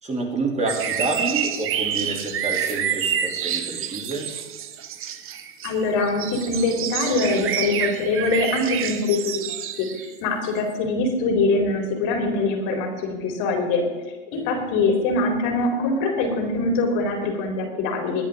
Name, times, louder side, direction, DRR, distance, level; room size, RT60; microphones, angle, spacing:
voice 1, 0.0-4.3 14.3-14.6, right 2 dB, 15° right, 0 dB, 3.1 m, -28 dB
sound 1, 0.7-10.1 10.7-10.8, right 9 dB, 30° right, 1.2 m, -28 dB
voice 2, 5.6-9.6 10.0-13.8 14.3-18.2, left 3 dB, 50° left, 1 dB, 4.1 m, -23 dB
22.0 x 9.6 x 3.8 m, 1.3 s
hypercardioid pair, 110°, 40 cm